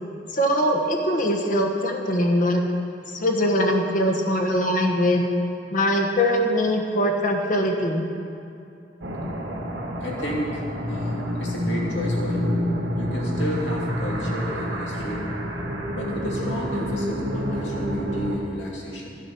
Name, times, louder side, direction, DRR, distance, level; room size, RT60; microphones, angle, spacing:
voice 1, 0.3-2.6 3.1-5.3 5.7-8.0, equal, 45° left, 1 dB, 1.3 m, -22 dB
sound 1, 9.0-18.4, equal, 90° right, 2.0 m, -28 dB
voice 2, 10.0-10.6 10.9-12.6 13.0-15.4 15.9-19.1, equal, 90° left, -3 dB, 2.5 m, -32 dB
12.0 x 9.0 x 5.8 m, 2.6 s
head